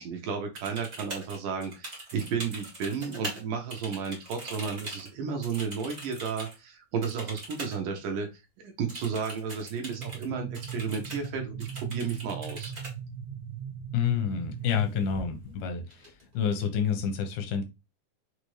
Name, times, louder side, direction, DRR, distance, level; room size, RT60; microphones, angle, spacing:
voice 1, 0.0-8.3 8.6-12.7, right 6 dB, 70° right, 2.3 m, -33 dB
sound 1, 0.5-3.4 3.7-6.5 7.0-7.8 8.0-8.1 8.9-10.3 10.5-11.3 11.6-12.9 14.6-14.8 15.1-15.6 15.9-16.5, right 1 dB, 30° right, 0.7 m, -42 dB
sound 2, 10.0-15.1, right 8 dB, 90° right, 2.4 m, -39 dB
voice 2, 13.9-17.6, left 7 dB, 85° left, 2.8 m, -29 dB
6.7 x 2.5 x 3.1 m
omnidirectional pair, 4.2 m